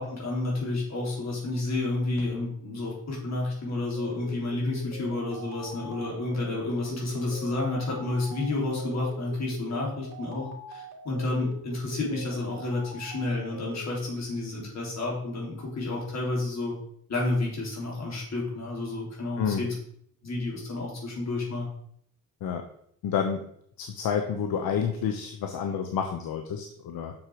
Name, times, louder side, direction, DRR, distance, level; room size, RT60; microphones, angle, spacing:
voice 1, 0.0-16.7 17.1-19.7 20.2-21.7, left 2 dB, 45° left, -3 dB, 3.7 m, -30 dB
sound 1, 3.9-13.9, equal, 75° right, 2.2 m, -43 dB
voice 2, 23.0-23.5 23.8-27.1, left 7 dB, 70° left, 5 dB, 1.0 m, -29 dB
7.4 x 6.5 x 4.8 m, 0.67 s
cardioid pair, 145°, 38 cm